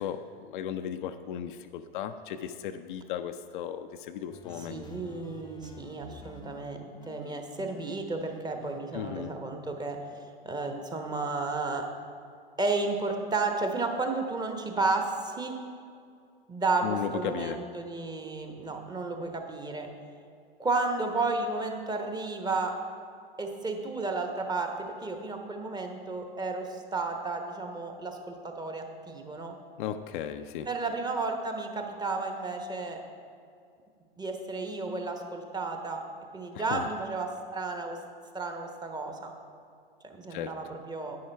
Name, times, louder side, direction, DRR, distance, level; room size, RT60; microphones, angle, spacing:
voice 1, 0.0-4.8 8.9-9.3 16.8-17.6 29.8-30.7 36.7-36.9 40.3-40.5, left 9 dB, 60° left, 8 dB, 0.5 m, -35 dB
sound 1, 4.3-6.6 7.0-8.8, left 2 dB, 15° left, 0.6 m, -50 dB
voice 2, 4.6-11.9 12.6-15.6 16.5-19.9 20.6-22.7 23.4-29.5 30.7-33.0 34.2-36.0 36.3-38.0 38.3-39.3 40.0-41.2, right 3 dB, 15° right, 4 dB, 1.0 m, -32 dB
10.5 x 9.2 x 3.4 m, 2.4 s
hypercardioid pair, 95°, 29 cm